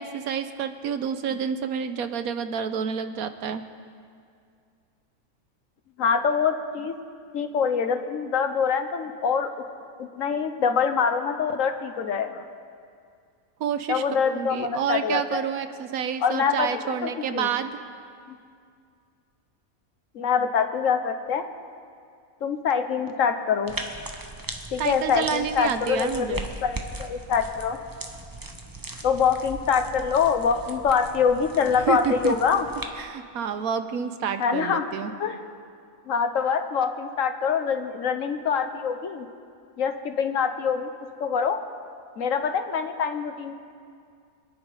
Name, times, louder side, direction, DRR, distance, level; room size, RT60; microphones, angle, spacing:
voice 1, 0.0-3.6 13.6-17.7 24.8-26.5 31.9-32.4 33.0-35.1, right 7 dB, 90° right, 10 dB, 1.3 m, -29 dB
voice 2, 6.0-6.9 7.3-9.5 10.1-12.4 13.9-15.4 16.2-17.5 18.3-18.4 20.1-21.4 22.4-23.8 24.7-27.8 29.0-32.7 34.4-34.9 35.2-35.4 36.1-39.3 39.8-40.9 41.2-41.6 42.2-43.5, left 6 dB, 70° left, 8 dB, 1.3 m, -25 dB
sound 1, 23.7-32.9, right 2 dB, 15° right, 0.9 m, -39 dB
26.0 x 10.5 x 4.9 m, 2.3 s
omnidirectional pair, 1.5 m